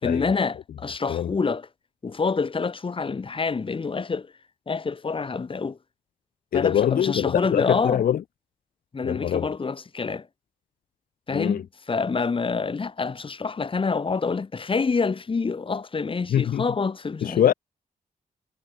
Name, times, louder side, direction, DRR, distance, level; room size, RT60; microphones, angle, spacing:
voice 1, 0.0-1.7 2.0-4.3 4.7-5.8 6.5-8.0 8.9-10.3 11.3-17.5, left 4 dB, 35° left, 4.0 m, -27 dB
voice 2, 6.5-8.2 9.0-9.5 11.3-11.6 16.3-16.6 17.2-17.5, left 10 dB, 80° left, 1.3 m, -23 dB
cardioid pair, 95°, 15 cm